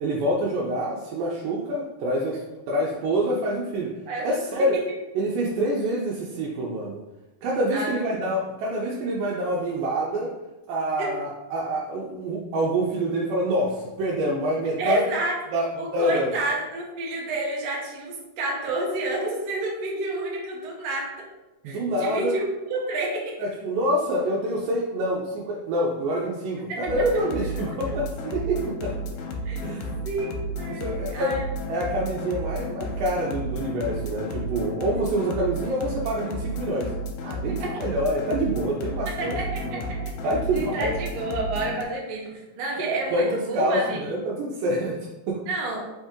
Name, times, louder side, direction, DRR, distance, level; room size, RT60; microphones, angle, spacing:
voice 1, 0.0-4.0 4.2-4.8 5.2-7.0 7.4-10.3 10.7-15.0 15.5-16.3 21.6-22.4 23.4-29.0 29.6-29.9 30.7-31.4 31.7-36.9 37.2-39.7 40.2-40.9 43.1-45.5, right 1 dB, 90° right, -4 dB, 2.3 m, -26 dB
voice 2, 4.1-4.8 7.7-8.1 11.0-11.1 14.8-15.4 15.8-21.1 21.6-23.4 26.7-26.8 29.4-29.7 30.0-31.6 37.6-37.7 39.1-40.0 40.5-44.1 45.5-45.9, right 2 dB, 65° right, -2 dB, 1.7 m, -30 dB
sound 1, 26.9-41.8, equal, 85° left, 2.1 m, -32 dB
5.1 x 2.7 x 3.5 m, 1.1 s
omnidirectional pair, 3.8 m